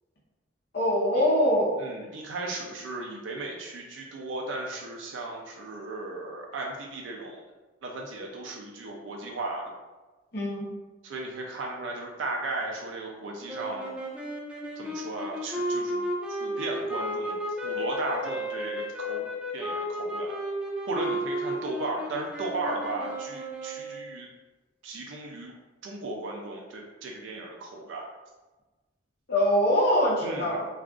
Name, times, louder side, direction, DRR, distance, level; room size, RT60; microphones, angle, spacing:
voice 1, 0.7-1.8 10.3-10.7 29.3-30.7, equal, 60° left, -4 dB, 0.8 m, -23 dB
voice 2, 1.8-7.4 7.8-9.7 11.0-13.9 14.8-19.3 19.5-20.3 20.9-24.3 24.8-25.5 25.8-28.1 30.2-30.6, right 2 dB, 80° right, 0 dB, 0.4 m, -36 dB
sound 1, 13.5-24.2, equal, 5° right, 0.4 m, -33 dB
2.4 x 2.3 x 3.6 m, 1.2 s
head